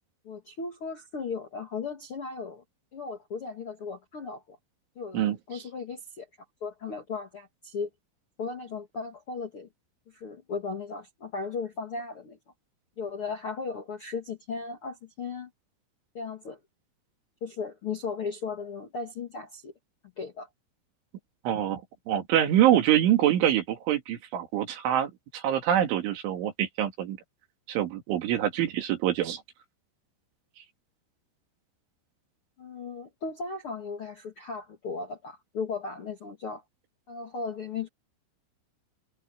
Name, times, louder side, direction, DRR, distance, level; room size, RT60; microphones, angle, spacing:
voice 1, 0.2-2.6 2.9-4.6 4.9-6.3 6.6-7.9 8.4-9.7 10.1-12.4 13.0-15.5 16.1-16.6 17.4-19.7 20.2-20.5 32.6-36.6 37.1-37.9, left 4 dB, 55° left, 1.5 m, -36 dB
voice 2, 21.4-21.8 22.1-27.2 27.7-29.4, right 11 dB, 80° right, 4.8 m, -25 dB
omnidirectional pair, 5.4 m